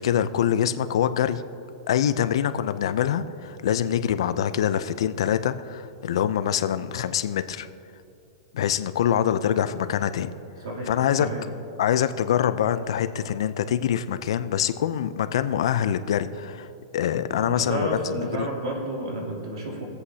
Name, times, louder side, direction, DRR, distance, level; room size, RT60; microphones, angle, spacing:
voice 1, 0.0-1.4 1.9-7.7 8.5-10.3 10.9-11.3 11.8-16.7 16.9-18.2, left 9 dB, 75° left, 11 dB, 0.6 m, -24 dB
voice 2, 10.6-11.5 17.3-19.8, right 1 dB, 85° right, -1 dB, 3.1 m, -31 dB
22.5 x 8.0 x 2.8 m, 2.7 s
supercardioid pair, 155°, 3 cm